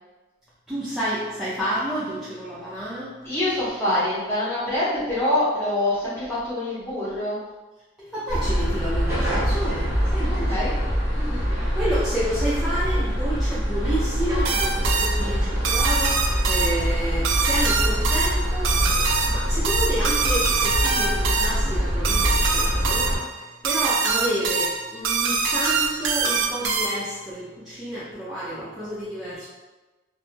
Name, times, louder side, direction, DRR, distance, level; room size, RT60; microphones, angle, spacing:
voice 1, 0.7-3.3 8.0-10.7 11.7-29.4, right 1 dB, ahead, -10 dB, 0.4 m, -30 dB
voice 2, 3.2-7.4 10.5-10.7 11.1-11.5, left 1 dB, 15° left, -10 dB, 0.9 m, -25 dB
sound 1, 8.3-23.2, equal, 20° right, 0.9 m, -24 dB
sound 2, 14.4-27.2, right 4 dB, 90° right, 0.4 m, -24 dB
2.2 x 2.1 x 3.0 m, 1.2 s
head